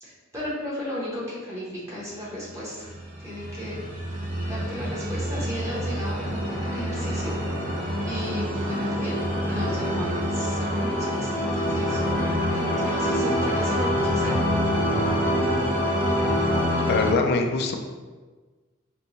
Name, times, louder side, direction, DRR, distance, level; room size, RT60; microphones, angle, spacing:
voice 1, 0.0-2.9 3.2-3.8 4.5-7.4 7.7-7.8 8.0-9.2 9.5-12.0 12.5-14.4, equal, 15° right, -8 dB, 0.9 m, -34 dB
sound 1, 2.8-17.1, equal, 45° right, 0.7 m, -26 dB
voice 2, 16.9-17.8, left 3 dB, 55° left, 4 dB, 0.4 m, -23 dB
4.1 x 2.2 x 2.9 m, 1.3 s
head